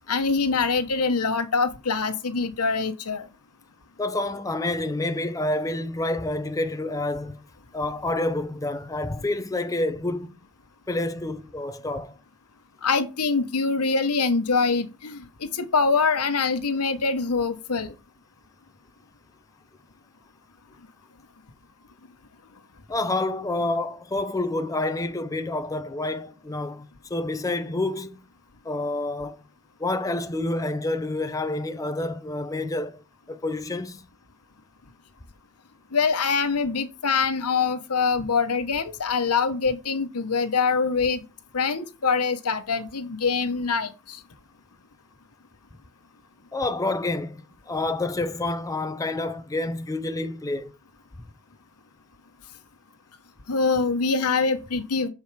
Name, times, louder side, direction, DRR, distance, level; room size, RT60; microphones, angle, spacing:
voice 1, 0.1-3.2 12.8-17.9 35.9-41.2 41.5-44.2 53.5-55.1, left 4 dB, 85° left, 1.1 m, -24 dB
voice 2, 4.0-7.4 7.7-10.4 10.9-12.2 22.9-28.2 28.6-29.4 29.8-33.0 33.3-34.1 46.5-50.7, left 2 dB, 15° left, 0.5 m, -28 dB
6.8 x 4.7 x 4.6 m
head